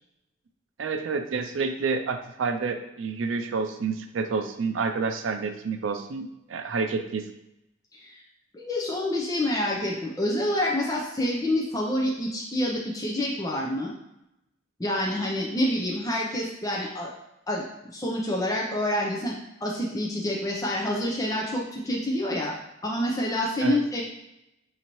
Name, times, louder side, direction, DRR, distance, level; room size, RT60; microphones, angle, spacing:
voice 1, 0.8-7.2 23.6-23.8, right 4 dB, 90° right, 6 dB, 0.4 m, -29 dB
voice 2, 8.5-13.9 14.8-17.1 17.5-17.6 17.9-19.4 19.6-22.5 22.8-24.0, left 1 dB, 20° left, -2 dB, 0.6 m, -27 dB
6.3 x 2.8 x 3.0 m, 0.87 s
head